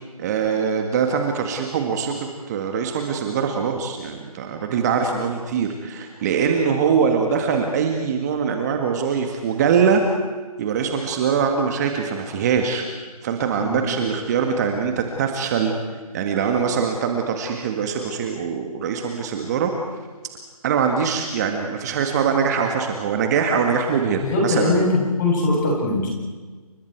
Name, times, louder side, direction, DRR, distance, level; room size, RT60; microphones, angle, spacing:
voice 1, 0.2-10.0 10.6-12.9 13.2-15.7 16.1-19.7 20.6-24.8, right 6 dB, 25° right, 3 dB, 1.8 m, -22 dB
voice 2, 24.2-26.1, left 2 dB, 30° left, -1 dB, 7.8 m, -21 dB
29.5 x 26.5 x 4.7 m, 1.3 s
figure-of-eight pair, 155°, 19 cm